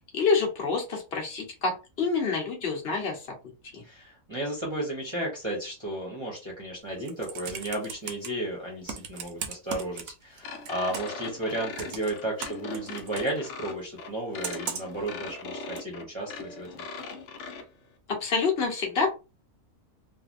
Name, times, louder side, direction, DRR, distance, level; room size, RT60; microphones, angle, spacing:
voice 1, 0.1-3.4 3.7-3.8 18.1-19.1, left 4 dB, 45° left, 0 dB, 1.1 m, -27 dB
voice 2, 3.8-16.8, right 1 dB, 25° right, -4 dB, 0.8 m, -33 dB
Computer keyboard, 6.9-8.3 8.9-10.4 10.6-11.2 11.8-13.3 14.4-15.0 15.8-15.9, right 7 dB, 70° right, 1.0 m, -37 dB
sound 1, 10.4-17.6, left 4 dB, 65° left, 0.8 m, -40 dB
3.2 x 2.2 x 2.5 m, 0.29 s
omnidirectional pair, 1.6 m